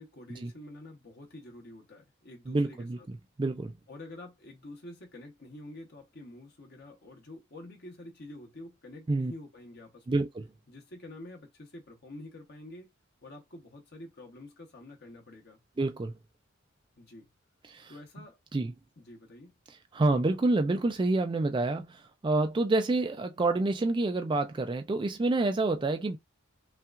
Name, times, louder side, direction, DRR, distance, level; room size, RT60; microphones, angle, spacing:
voice 1, 0.0-3.1 3.9-10.2 10.7-12.9 13.2-15.6 17.0-17.3 17.9-18.4 19.0-19.5, left 1 dB, 50° left, 1.0 m, -48 dB
voice 2, 2.5-3.7 9.1-9.3 10.1-10.5 15.8-16.1 17.6-17.9 18.5-18.7 19.7-26.2, right 2 dB, 25° right, 0.3 m, -28 dB
5.5 x 2.4 x 2.4 m
head